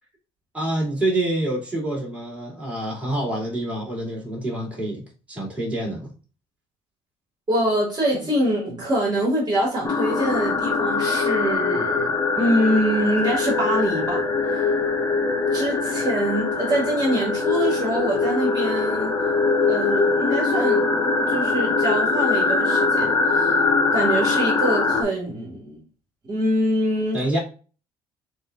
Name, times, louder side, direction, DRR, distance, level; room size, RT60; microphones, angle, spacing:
voice 1, 0.5-5.0 5.3-6.1 27.1-27.4, right 1 dB, 10° right, 2.3 m, -26 dB
voice 2, 7.5-14.6 15.5-19.1 19.7-20.9 21.3-23.6 23.9-25.8 26.3-27.4, equal, 35° right, 1.9 m, -24 dB
sound 1, 9.8-25.0, left 3 dB, 25° left, 0.9 m, -22 dB
6.8 x 2.4 x 2.4 m
supercardioid pair, 90°, 12 cm